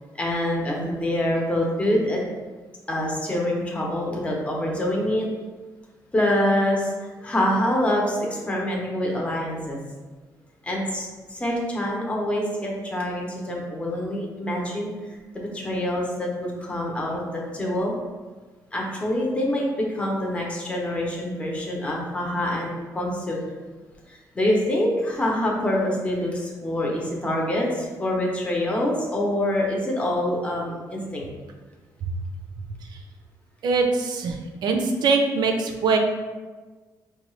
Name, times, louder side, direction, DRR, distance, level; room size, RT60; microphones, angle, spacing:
voice 1, 0.1-2.2 2.9-5.3 6.1-6.9 7.2-9.8 10.6-14.9 15.3-17.9 18.7-23.4 24.1-31.3, left 1 dB, 15° left, -2 dB, 0.7 m, -25 dB
voice 2, 33.6-36.0, right 4 dB, 70° right, 4 dB, 0.5 m, -22 dB
5.1 x 2.3 x 3.1 m, 1.3 s
cardioid pair, 140°, 7 cm